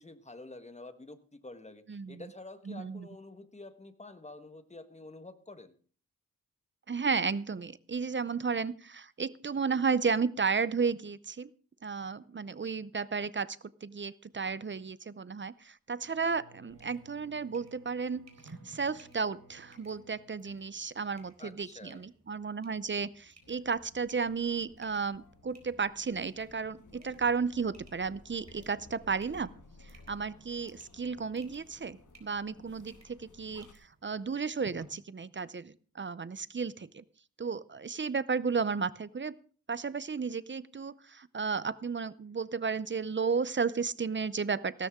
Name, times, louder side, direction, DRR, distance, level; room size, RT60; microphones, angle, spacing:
voice 1, 0.0-5.8 21.4-22.0, left 2 dB, 20° left, 10 dB, 1.4 m, -48 dB
voice 2, 1.9-2.2 2.7-3.1 6.9-11.5 11.8-29.5 29.8-33.7 34.0-37.0 37.4-39.3 39.7-44.9, right 5 dB, 35° right, 18 dB, 0.6 m, -33 dB
Bowed string instrument, 15.9-21.3, right 1 dB, 75° right, 5.6 m, -60 dB
sound 1, 16.7-34.8, right 3 dB, 50° right, 4.0 m, -60 dB
sound 2, 23.4-33.7, left 3 dB, 60° left, 1.8 m, -57 dB
16.0 x 13.0 x 3.7 m, 0.42 s
wide cardioid pair, 95°, 34 cm